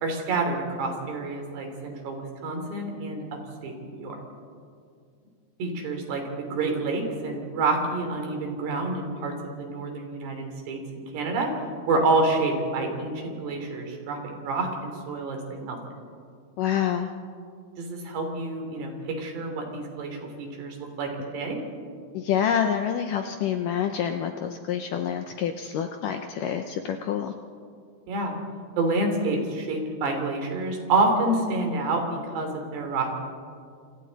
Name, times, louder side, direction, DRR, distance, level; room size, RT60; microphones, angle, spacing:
voice 1, 0.0-4.2 5.6-11.5 11.9-15.8 17.8-21.6 28.1-28.3 28.8-33.1, right 2 dB, 85° right, 3 dB, 5.3 m, -28 dB
voice 2, 16.6-17.1 22.1-27.3, left 9 dB, 80° left, 6 dB, 1.9 m, -27 dB
27.5 x 27.5 x 4.1 m, 2.2 s
omnidirectional pair, 4.7 m